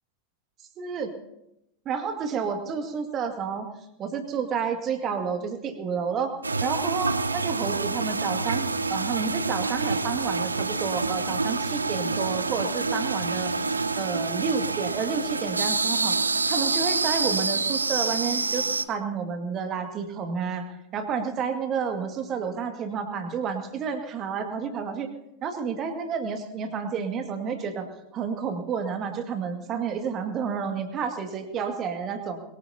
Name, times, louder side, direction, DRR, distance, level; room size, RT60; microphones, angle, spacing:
voice 1, 0.8-1.1 1.9-3.7 4.0-6.3 6.6-13.5 14.0-16.2 16.5-20.7 20.9-25.1 25.4-27.9 28.1-32.4, right 6 dB, 30° right, 6 dB, 2.1 m, -30 dB
sound 1, 6.4-18.9, right 3 dB, 80° right, 0.7 m, -27 dB
22.5 x 18.0 x 2.8 m, 0.84 s
figure-of-eight pair, 90°, 0 cm